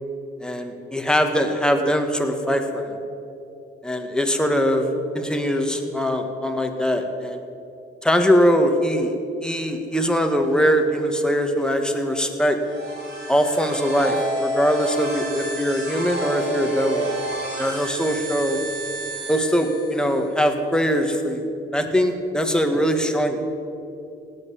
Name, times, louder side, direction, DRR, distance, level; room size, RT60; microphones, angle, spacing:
voice 1, 0.4-3.0 3.8-4.9 5.1-7.4 8.0-9.1 9.4-12.6 13.3-17.1 17.6-18.6 19.3-21.4 21.7-23.4, equal, 5° left, 5 dB, 1.6 m, -21 dB
sound 1, 12.6-20.2, right 1 dB, 80° right, 4.2 m, -30 dB
18.0 x 8.2 x 7.1 m, 2.7 s
cardioid pair, 90°, 20 cm